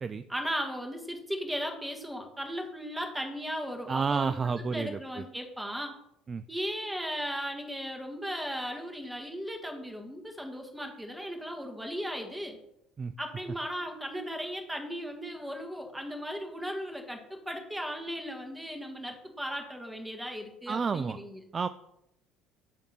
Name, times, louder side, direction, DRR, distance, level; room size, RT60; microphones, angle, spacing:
voice 1, 0.3-5.9 6.5-12.6 13.2-21.4, equal, 10° right, 3 dB, 1.7 m, -36 dB
voice 2, 3.9-5.2 6.3-6.4 13.0-13.1 20.7-21.2 21.5-21.7, right 5 dB, 30° right, 12 dB, 0.3 m, -30 dB
8.9 x 3.6 x 5.7 m, 0.81 s
figure-of-eight pair, 60°, 0 cm